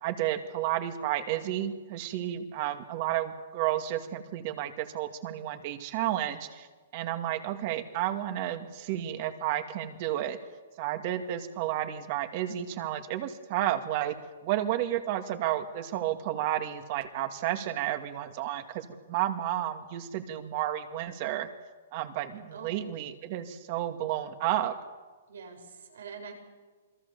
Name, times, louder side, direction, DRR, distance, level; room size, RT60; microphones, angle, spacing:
voice 1, 0.0-6.7 6.9-10.4 10.8-14.2 14.4-21.5 21.9-24.8, right 12 dB, 40° right, 7 dB, 2.2 m, -31 dB
voice 2, 22.5-22.8 25.3-26.3, right 6 dB, 85° right, 3 dB, 7.0 m, -44 dB
28.0 x 21.5 x 7.1 m, 1.3 s
hypercardioid pair, 155°, 0 cm